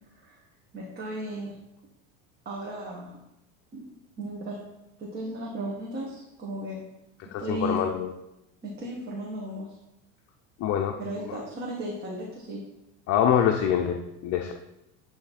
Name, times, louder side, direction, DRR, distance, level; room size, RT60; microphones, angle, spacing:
voice 1, 0.7-1.5 2.4-3.1 3.7-3.9 4.2-4.6 5.0-6.8 7.4-7.8 8.6-9.7 11.0-12.6, right 1 dB, 30° right, -4 dB, 1.5 m, -35 dB
voice 2, 7.3-8.1 10.6-11.4 13.1-14.5, left 9 dB, 45° left, 3 dB, 0.6 m, -25 dB
9.7 x 3.3 x 4.2 m, 0.88 s
supercardioid pair, 120°, 35 cm